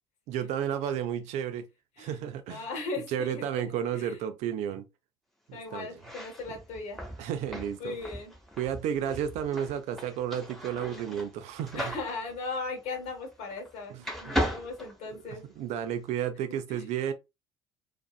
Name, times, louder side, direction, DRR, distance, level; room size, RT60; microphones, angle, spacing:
voice 1, 0.3-1.7 2.0-2.7 3.1-4.8 5.5-5.9 7.2-8.0 8.6-12.0 13.9-14.6 15.1-17.1, right 9 dB, 60° right, 0.5 m, -32 dB
voice 2, 2.5-4.2 5.5-7.0 7.8-8.3 11.7-15.4 16.7-16.9, left 3 dB, 60° left, 1.1 m, -38 dB
sound 1, 5.9-13.7 14.0-15.7, equal, ahead, 1.0 m, -37 dB
2.5 x 2.4 x 2.3 m
hypercardioid pair, 60°, 13 cm